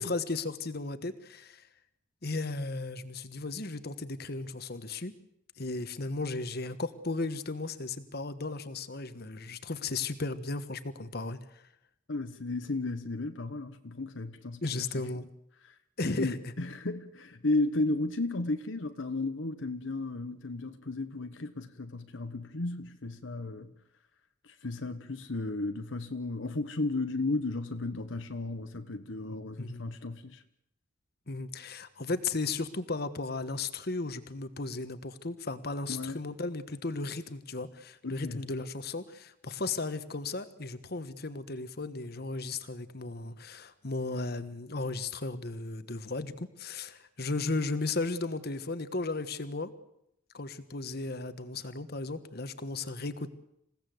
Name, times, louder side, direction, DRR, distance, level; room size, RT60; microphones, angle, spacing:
voice 1, 0.0-1.7 2.2-5.1 5.6-11.4 14.6-15.3 16.0-16.4 29.6-29.9 31.3-49.7 50.3-53.3, left 3 dB, 55° left, 1.4 m, -35 dB
voice 2, 12.1-14.9 15.6-15.8 16.2-23.7 24.4-30.4 35.9-36.2 38.0-38.5, left 2 dB, 75° left, 1.1 m, -34 dB
28.0 x 16.5 x 7.8 m
head